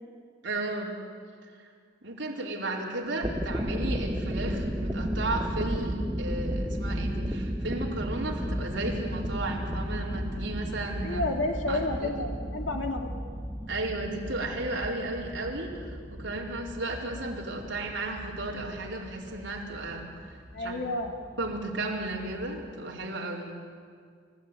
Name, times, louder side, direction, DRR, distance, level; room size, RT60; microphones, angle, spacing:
voice 1, 0.4-0.9 2.0-11.2 11.7-12.2 13.7-20.8 21.4-23.5, right 2 dB, 65° right, -2 dB, 4.6 m, -34 dB
sound 1, 3.0-22.7, equal, 15° right, 1.1 m, -34 dB
voice 2, 11.0-13.2 20.5-21.2, left 2 dB, 70° left, 3 dB, 2.9 m, -31 dB
30.0 x 16.0 x 9.3 m, 2.1 s
head